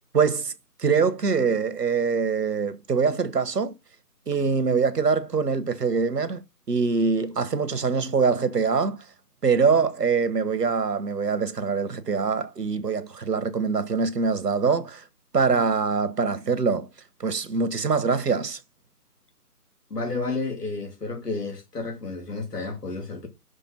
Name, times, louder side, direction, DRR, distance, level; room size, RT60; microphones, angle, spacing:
voice 1, 0.1-0.5 0.8-3.7 4.3-9.0 9.4-15.0 15.3-16.9 17.2-18.6, right 5 dB, 80° right, 1.1 m, -24 dB
voice 2, 19.9-23.3, left 3 dB, 80° left, 2.9 m, -31 dB
6.1 x 3.3 x 5.8 m
figure-of-eight pair, 160°, 47 cm